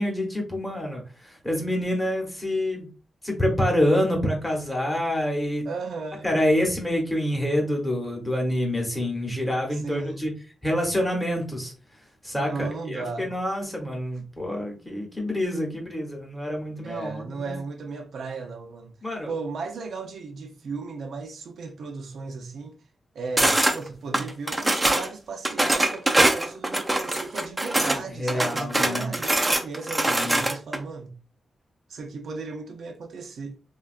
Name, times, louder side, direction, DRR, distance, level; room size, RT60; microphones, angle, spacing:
voice 1, 0.0-2.9 3.2-5.6 6.2-10.3 10.6-11.7 12.2-17.5 19.0-19.3 27.9-29.2 30.1-30.4, left 1 dB, 10° left, 0.9 m, -27 dB
voice 2, 5.6-6.4 9.7-10.3 12.4-13.4 16.8-19.0 19.3-22.8 23.1-31.2 31.9-33.6, right 4 dB, 75° right, 0.5 m, -36 dB
sound 1, 23.4-23.8 24.1-25.1 25.4-28.0 28.3-30.8, right 1 dB, 10° right, 0.4 m, -23 dB
3.6 x 2.3 x 2.4 m
wide cardioid pair, 175°, 0 cm